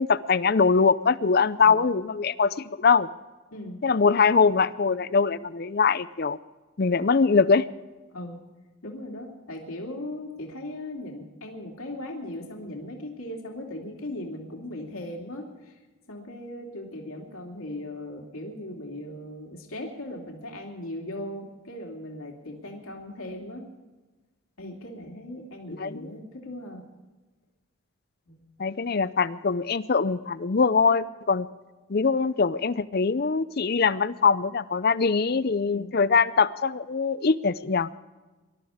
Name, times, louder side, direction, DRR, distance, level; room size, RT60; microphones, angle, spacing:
voice 1, 0.0-3.1 3.8-6.4 6.8-7.7 25.7-26.0 28.6-31.5 31.9-37.9, left 5 dB, 45° left, 16 dB, 0.5 m, -22 dB
voice 2, 3.5-3.8 8.1-8.4 8.8-15.8 16.1-23.7 24.6-26.8 28.3-28.6 35.6-35.9, left 1 dB, 90° left, 0 dB, 2.7 m, -38 dB
21.5 x 12.5 x 5.0 m, 1.2 s
head